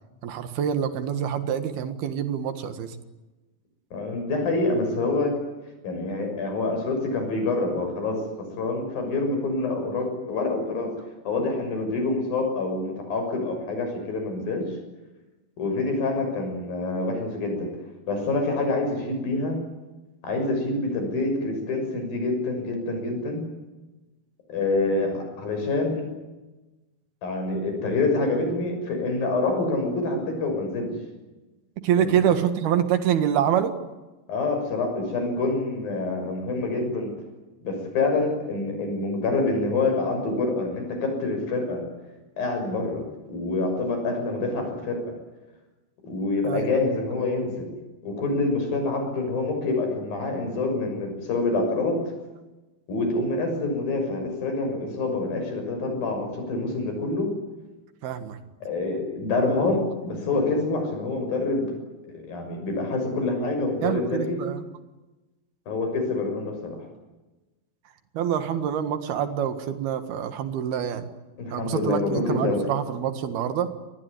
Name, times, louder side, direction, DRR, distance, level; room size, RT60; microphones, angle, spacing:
voice 1, 0.2-3.0 31.8-33.8 46.4-46.7 58.0-58.4 63.8-64.6 68.2-71.1 71.5-73.7, right 9 dB, 80° right, 9 dB, 3.7 m, -26 dB
voice 2, 3.9-5.3 5.8-8.2 8.6-10.9 11.2-14.7 15.6-17.7 18.1-19.6 20.2-23.4 24.5-26.0 27.2-30.9 32.0-32.2 34.3-37.1 37.6-41.8 42.4-45.0 46.0-47.7 48.0-52.0 52.9-57.3 58.6-61.7 62.0-64.4 65.7-66.7 71.4-72.6, left 3 dB, 65° left, 4 dB, 8.3 m, -26 dB
25.0 x 20.0 x 9.8 m, 1.1 s
omnidirectional pair, 4.4 m